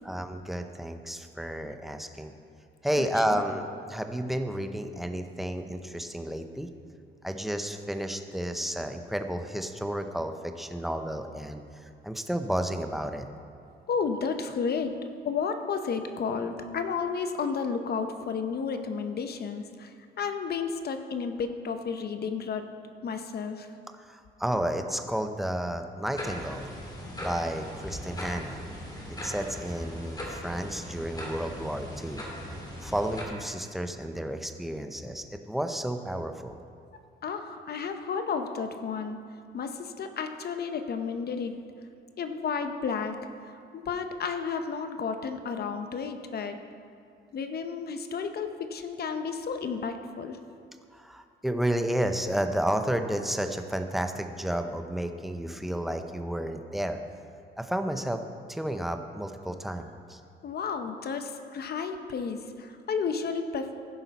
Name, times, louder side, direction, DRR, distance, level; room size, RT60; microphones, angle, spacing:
voice 1, 0.0-2.3 2.8-6.7 7.2-11.6 12.0-13.3 24.1-26.7 27.2-28.6 29.2-32.2 32.8-36.6 50.9-57.0 57.6-58.2 58.5-60.2, right 1 dB, ahead, 6 dB, 0.6 m, -31 dB
voice 2, 13.9-14.9 15.2-22.7 23.0-23.7 37.2-39.2 39.5-41.5 42.2-43.2 43.7-46.6 47.3-50.4 60.4-63.8, left 5 dB, 55° left, 7 dB, 0.8 m, -32 dB
sound 1, 26.1-33.2, equal, 20° left, 2.1 m, -39 dB
15.0 x 5.6 x 4.1 m, 2.4 s
cardioid pair, 90°, 20 cm